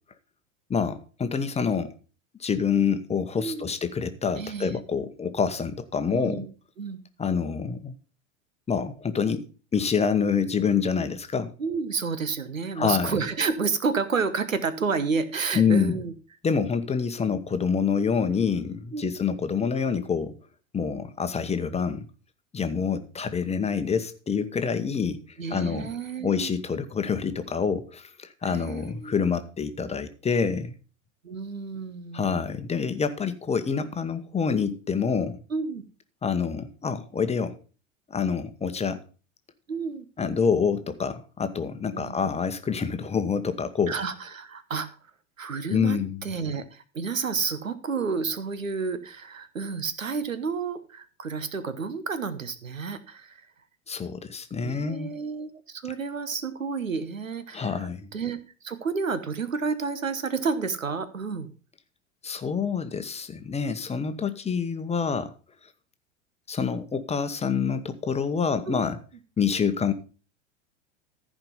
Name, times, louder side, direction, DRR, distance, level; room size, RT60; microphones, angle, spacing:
voice 1, 0.7-1.9 2.4-6.4 7.2-7.9 8.7-9.4 9.7-11.5 12.7-13.2 15.5-15.9 16.4-20.4 20.7-22.1 22.5-25.9 26.2-30.7 32.1-35.4 36.2-37.6 38.1-39.0 40.2-44.0 45.7-46.3 53.9-55.1 57.5-58.1 62.2-65.3 66.5-69.0 69.4-69.9, left 6 dB, 15° left, 1.1 m, -27 dB
voice 2, 3.4-3.7 4.4-4.7 6.1-6.5 6.8-7.0 11.6-16.1 18.9-19.1 25.4-26.5 28.4-29.3 31.2-32.4 35.5-35.8 39.7-40.1 41.9-42.2 43.9-44.9 45.4-53.4 54.6-58.4 58.6-61.5 68.7-68.9, right 5 dB, 85° right, 1.2 m, -30 dB
14.5 x 5.1 x 5.6 m
figure-of-eight pair, 85°, 38 cm